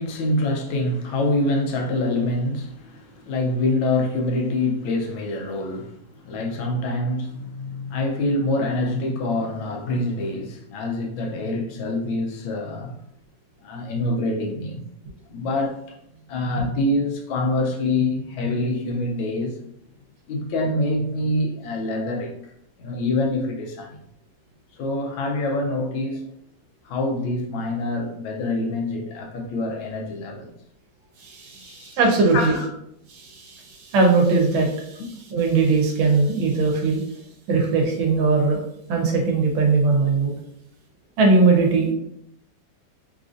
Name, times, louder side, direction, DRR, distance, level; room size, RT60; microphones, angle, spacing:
voice 1, 0.0-12.9 13.6-14.8 15.3-19.5 20.3-22.3 22.8-24.0 24.7-26.2 26.8-30.5 31.6-32.0 32.3-32.7 35.0-35.1, left 2 dB, 85° left, 1.4 m, -25 dB
voice 2, 31.2-32.6 33.1-35.0 35.3-37.0 37.5-38.6 38.9-40.3 41.2-41.9, right 3 dB, 85° right, 1.6 m, -20 dB
4.0 x 2.5 x 2.5 m
omnidirectional pair, 2.2 m